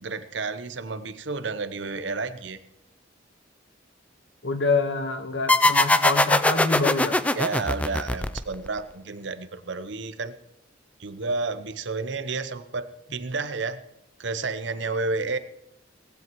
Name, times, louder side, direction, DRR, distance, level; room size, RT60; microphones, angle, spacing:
voice 1, 0.0-2.6 7.4-10.3 11.0-13.8 14.2-15.4, right 3 dB, 75° right, 11 dB, 0.8 m, -31 dB
voice 2, 4.4-7.2, left 4 dB, 70° left, 8 dB, 1.3 m, -26 dB
sound 1, 5.5-8.8, left 2 dB, 5° left, 0.4 m, -21 dB
19.0 x 15.5 x 3.1 m, 0.81 s
head